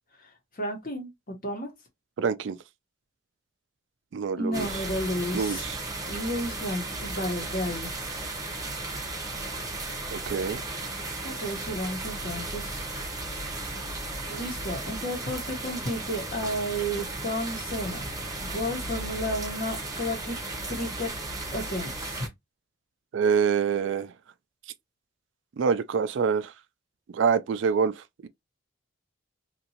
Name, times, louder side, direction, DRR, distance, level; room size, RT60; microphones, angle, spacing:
voice 1, 0.6-1.7 4.4-5.7 6.1-7.9 11.2-12.9 14.3-18.1 18.4-20.4 20.7-21.1 21.5-22.3, equal, 45° left, 1.1 m, -32 dB
voice 2, 2.2-2.6 4.1-4.8 5.3-5.8 10.1-10.6 23.1-24.1 25.6-26.5 27.1-28.3, right 6 dB, 65° right, 0.3 m, -26 dB
sound 1, 4.5-22.3, right 2 dB, 20° right, 0.7 m, -35 dB
2.8 x 2.6 x 2.8 m
head